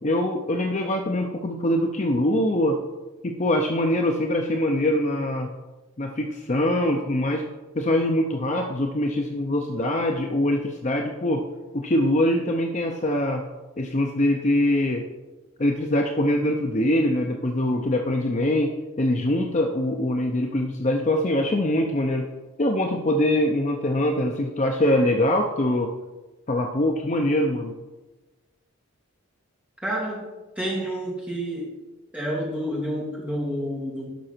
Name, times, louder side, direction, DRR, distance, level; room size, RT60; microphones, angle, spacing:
voice 1, 0.0-2.8 3.2-5.5 6.0-7.4 7.7-11.4 11.7-13.5 13.8-15.0 15.6-22.3 22.6-25.9 26.5-27.7, left 1 dB, 35° left, 3 dB, 0.6 m, -23 dB
voice 2, 29.8-30.3 30.6-31.7 32.1-34.1, equal, 5° right, -4 dB, 2.2 m, -29 dB
11.5 x 6.0 x 4.4 m, 1.1 s
head